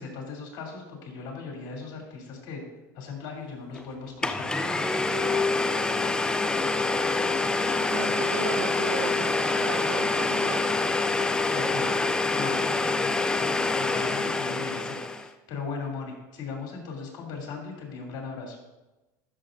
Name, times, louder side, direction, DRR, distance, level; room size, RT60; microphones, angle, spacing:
voice 1, 0.0-2.6 2.9-4.7 11.5-12.0 12.3-18.6, left 4 dB, 50° left, 0 dB, 2.9 m, -38 dB
Domestic sounds home sounds, 3.7-3.8 4.2-15.3, left 3 dB, 10° left, 0.4 m, -26 dB
voice 2, 7.3-10.6 11.4-11.5, right 7 dB, 65° right, 9 dB, 0.8 m, -36 dB
12.0 x 6.3 x 2.6 m, 1.1 s
supercardioid pair, 115°, 10 cm